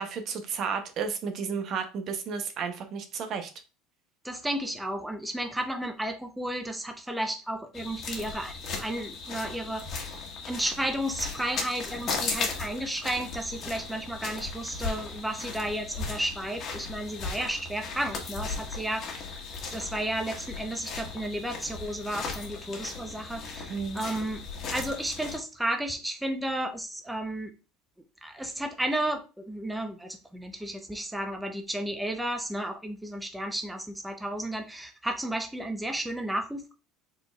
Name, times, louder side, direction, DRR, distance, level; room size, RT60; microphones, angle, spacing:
voice 1, 0.0-3.5 23.7-24.0, right 6 dB, 45° right, 0.8 m, -32 dB
voice 2, 4.2-19.4 19.7-24.4 24.7-27.5 28.2-36.7, right 1 dB, 5° right, 0.6 m, -33 dB
sound 1, 7.7-25.4, left 4 dB, 45° left, 1.3 m, -37 dB
4.6 x 3.9 x 2.3 m
supercardioid pair, 120°, 0 cm